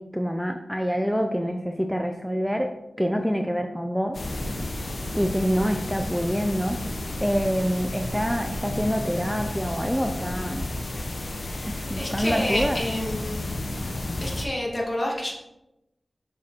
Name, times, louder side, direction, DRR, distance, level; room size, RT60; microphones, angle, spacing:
voice 1, 0.0-2.7 3.0-4.2 5.1-6.8 7.2-10.7 11.7-12.8, equal, ahead, 4 dB, 0.6 m, -26 dB
sound 1, 4.1-14.5, left 1 dB, 65° left, 1.1 m, -32 dB
voice 2, 11.5-13.5 14.2-15.3, left 1 dB, 35° left, -2 dB, 2.4 m, -29 dB
7.4 x 6.1 x 4.2 m, 0.90 s
wide cardioid pair, 55°, 0 cm